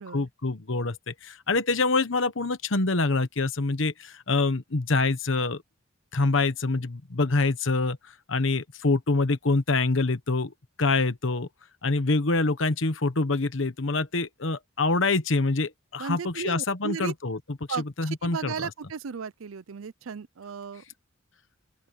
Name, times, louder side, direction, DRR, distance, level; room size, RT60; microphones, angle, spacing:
voice 1, 0.1-5.6 6.1-8.0 8.3-11.5 11.8-18.7, left 3 dB, 65° left, 1.1 m, -26 dB
voice 2, 16.0-17.1 17.7-20.8, right 6 dB, 85° right, 0.5 m, -35 dB
open air
head